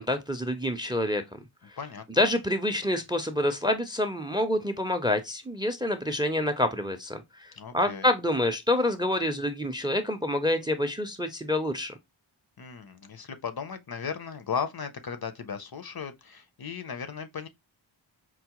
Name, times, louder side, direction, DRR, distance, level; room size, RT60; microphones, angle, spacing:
voice 1, 0.0-1.4 1.7-1.8 2.1-12.0, left 1 dB, 10° right, 0.4 m, -27 dB
voice 2, 7.6-8.1 12.6-17.5, left 6 dB, 50° left, 0.5 m, -36 dB
4.5 x 2.0 x 2.8 m
wide cardioid pair, 50°, 47 cm